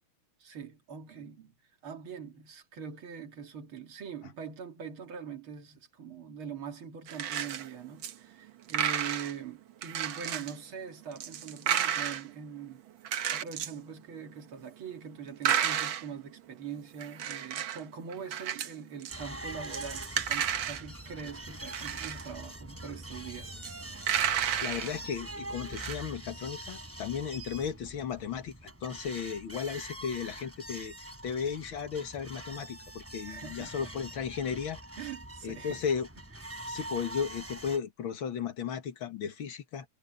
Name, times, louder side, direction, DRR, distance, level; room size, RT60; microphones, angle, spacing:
voice 1, 0.4-1.5 1.8-12.8 13.1-23.6 33.3-33.9 35.0-35.8, right 7 dB, 90° right, 2.9 m, -43 dB
sound 1, 7.1-7.7 8.0-8.1 8.5-9.3 9.8-10.5 11.0-12.2 13.0-13.7 15.4-16.1 17.0-17.8 18.1-18.7 19.0-19.2 19.6-20.8 21.6-22.3 23.6-23.7 24.0-25.0 25.4-25.5 25.7-25.9, right 9 dB, 75° right, 1.9 m, -32 dB
sound 2, 19.1-37.8, right 1 dB, 5° right, 3.4 m, -44 dB
voice 2, 24.6-34.8 35.4-36.1 36.7-39.9, left 7 dB, 80° left, 2.4 m, -35 dB
omnidirectional pair, 2.2 m